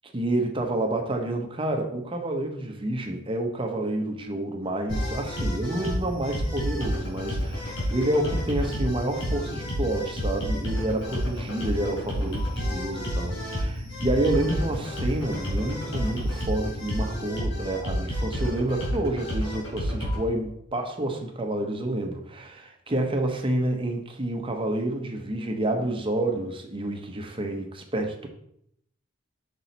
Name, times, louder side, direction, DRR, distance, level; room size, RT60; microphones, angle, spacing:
voice 1, 0.1-28.3, right 1 dB, 25° right, 3 dB, 1.0 m, -29 dB
sound 1, 4.9-20.2, equal, 75° left, 2.9 m, -30 dB
6.0 x 5.5 x 4.1 m, 0.72 s
head